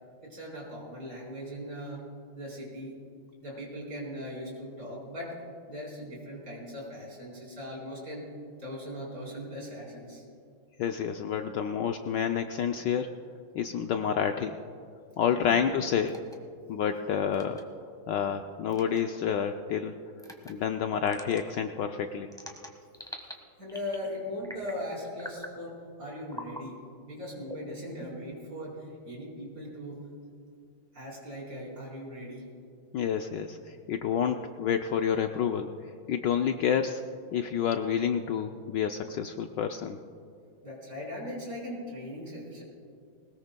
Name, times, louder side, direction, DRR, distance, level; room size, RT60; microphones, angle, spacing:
voice 1, 0.2-2.0 2.3-2.9 3.4-5.4 5.7-8.3 8.6-10.2 15.4-15.6 23.6-25.7 26.0-30.0 30.9-32.4 40.6-42.6, equal, 45° right, -4 dB, 4.6 m, -39 dB
voice 2, 10.8-13.1 13.5-14.6 15.2-16.1 16.7-17.6 18.1-19.9 20.5-22.3 32.9-33.6 33.9-35.7 36.1-37.0 37.3-40.0, left 8 dB, 70° left, 6 dB, 1.1 m, -29 dB
sound 1, 16.1-16.4 17.3-17.6 18.7-19.0 20.2-20.5 21.1-21.4 22.3-23.3 23.7-24.1 24.4-24.8 25.2-25.6 26.3-26.6 27.4-28.3, left 1 dB, 5° left, 0.9 m, -44 dB
20.5 x 19.5 x 2.2 m, 2.4 s
omnidirectional pair, 2.2 m